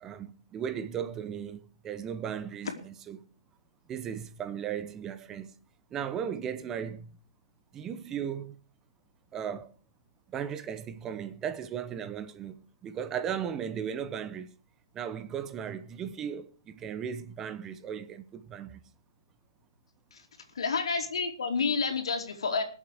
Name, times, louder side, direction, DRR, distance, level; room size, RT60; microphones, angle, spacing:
voice 1, 0.0-3.2 3.9-5.5 5.9-7.1 7.7-8.6 9.3-9.7 10.3-12.5 12.8-14.5 14.9-18.8, right 8 dB, 15° right, 0.8 m, -36 dB
voice 2, 20.5-22.6, left 5 dB, 75° left, 3.0 m, -29 dB
20.5 x 7.3 x 5.0 m
hypercardioid pair, 155°, 3 cm